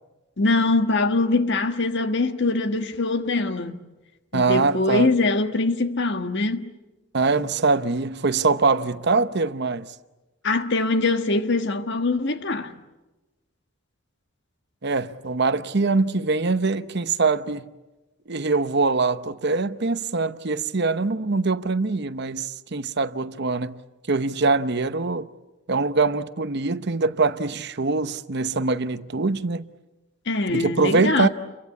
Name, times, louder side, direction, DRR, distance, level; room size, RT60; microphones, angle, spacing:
voice 1, 0.4-3.8 4.3-6.7 10.4-12.7 30.3-31.3, left 3 dB, 55° left, 1.6 m, -23 dB
voice 2, 4.3-5.1 7.1-9.9 14.8-17.7 18.3-23.8 24.1-25.3 25.7-29.6 30.5-31.3, right 3 dB, 55° right, 0.9 m, -23 dB
30.0 x 23.5 x 8.4 m
head